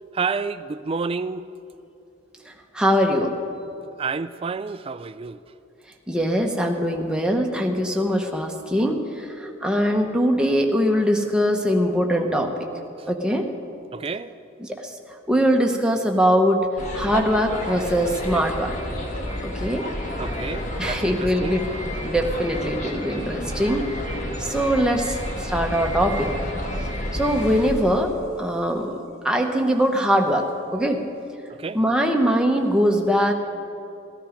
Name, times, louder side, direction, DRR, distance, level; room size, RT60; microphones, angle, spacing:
voice 1, 0.1-1.5 4.0-5.4 13.0-13.1 13.9-14.3 20.2-21.6 31.5-31.8, right 4 dB, 30° right, 0.3 m, -29 dB
voice 2, 2.5-3.3 6.1-12.5 13.1-13.5 14.6-15.0 15.3-16.6 16.9-18.7 19.4-19.8 20.8-21.6 22.0-26.3 27.1-28.1 28.4-29.0 29.2-30.5 30.7-31.0 31.7-33.3, equal, 5° right, 0.9 m, -22 dB
sound 1, 16.8-27.7, left 1 dB, 35° left, 1.4 m, -30 dB
14.0 x 13.5 x 5.1 m
head